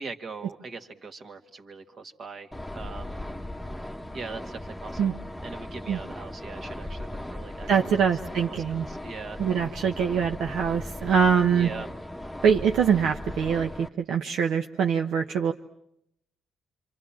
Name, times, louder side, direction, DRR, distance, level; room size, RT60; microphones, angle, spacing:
voice 1, 0.0-3.2 4.1-7.7 8.0-8.1 8.4-9.4 11.5-11.9, right 4 dB, 50° right, 6 dB, 2.1 m, -41 dB
sound 1, 2.5-13.9, left 1 dB, ahead, 1.1 m, -38 dB
voice 2, 7.7-8.9 9.4-11.7 12.4-15.5, right 7 dB, 80° right, 4 dB, 1.0 m, -24 dB
27.5 x 26.5 x 7.5 m, 0.77 s
cardioid pair, 90°, 0 cm